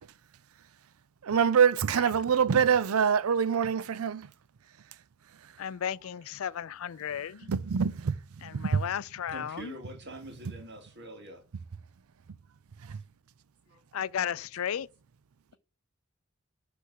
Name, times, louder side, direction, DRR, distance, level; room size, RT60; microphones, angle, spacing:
voice 1, 1.2-4.3 7.5-8.2 8.5-8.8 12.9-13.0, right 7 dB, 80° right, 0.5 m, -25 dB
voice 2, 5.6-7.5 8.4-9.8 13.9-14.9, left 9 dB, 70° left, 0.4 m, -34 dB
voice 3, 9.3-11.4 13.7-13.8, right 1 dB, 55° right, 2.3 m, -45 dB
10.0 x 3.4 x 6.1 m
head